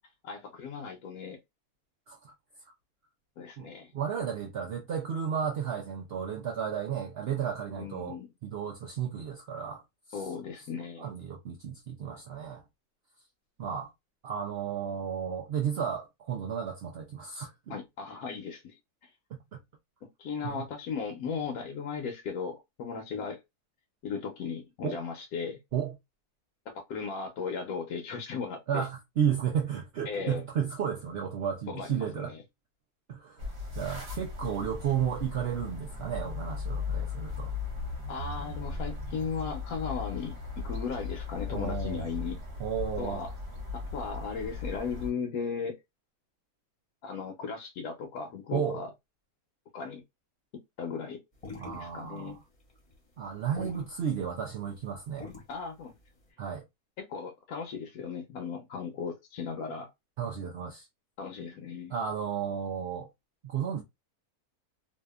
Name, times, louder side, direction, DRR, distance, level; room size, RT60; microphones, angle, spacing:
voice 1, 0.2-1.4 3.4-3.9 7.7-8.3 10.1-11.1 17.7-19.1 20.0-23.4 24.0-25.6 26.7-28.9 30.1-30.4 31.7-32.4 38.1-42.4 43.0-43.3 43.7-45.8 47.0-48.9 49.7-50.0 50.8-51.2 51.7-52.4 55.5-55.9 57.0-59.9 61.2-61.9, left 5 dB, 75° left, 1.1 m, -37 dB
voice 2, 3.9-9.8 10.1-10.2 11.0-12.6 13.6-13.9 14.2-17.8 19.3-19.6 20.4-20.6 24.8-25.0 25.7-25.9 28.7-32.3 33.1-33.4 33.7-37.5 41.5-42.1 42.6-43.2 48.5-48.8 51.6-52.4 53.2-55.3 56.4-56.6 60.2-60.9 61.9-63.1 63.4-63.8, right 8 dB, 75° right, 0.5 m, -33 dB
sound 1, 33.4-45.1, left 4 dB, 50° right, 1.0 m, -37 dB
sound 2, 51.3-56.3, left 4 dB, 30° left, 0.8 m, -45 dB
2.7 x 2.3 x 2.2 m
omnidirectional pair, 1.6 m